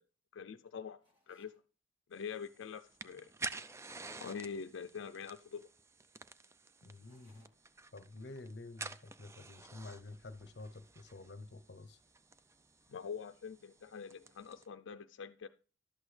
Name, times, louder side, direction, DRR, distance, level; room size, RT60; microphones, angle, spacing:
voice 1, 0.3-1.0 1.3-1.5 2.1-3.3 4.2-5.7 12.9-15.5, left 6 dB, 90° left, 0.4 m, -44 dB
sound 1, 1.0-1.7 6.9-7.8, left 1 dB, 30° right, 1.8 m, -72 dB
sound 2, 2.2-14.7, right 3 dB, 15° right, 0.4 m, -50 dB
voice 2, 6.8-7.5 7.9-12.0, left 2 dB, 60° left, 0.7 m, -50 dB
11.5 x 8.2 x 3.2 m
head